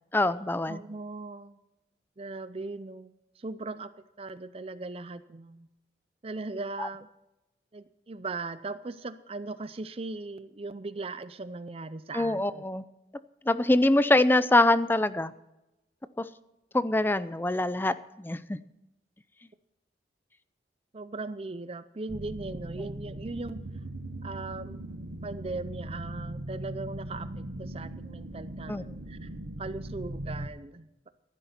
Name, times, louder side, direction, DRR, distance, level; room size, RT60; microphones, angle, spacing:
voice 1, 0.1-0.8 6.8-6.9 12.1-12.8 13.5-15.3 16.2-16.3 16.7-18.6 28.7-28.8, left 2 dB, 10° left, 14 dB, 0.5 m, -24 dB
voice 2, 0.7-1.6 2.2-3.9 4.2-5.7 6.2-7.1 7.7-12.6 20.9-23.6 24.2-24.9 25.2-29.3 29.6-31.1, right 3 dB, 35° right, 13 dB, 0.5 m, -39 dB
sound 1, 22.1-30.5, right 1 dB, 60° right, 1.1 m, -39 dB
14.5 x 12.0 x 4.3 m, 0.93 s
head